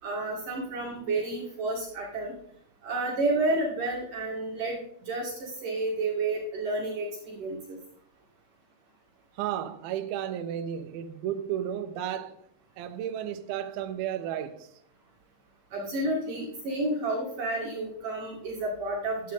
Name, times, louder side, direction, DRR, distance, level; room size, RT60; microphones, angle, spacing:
voice 1, 0.0-2.4 2.8-7.8 15.7-19.3, right 2 dB, 55° right, 3.2 m, -30 dB
voice 2, 9.4-12.4 12.8-14.7, right 10 dB, 80° right, 2.2 m, -33 dB
11.5 x 8.8 x 3.7 m
omnidirectional pair, 5.3 m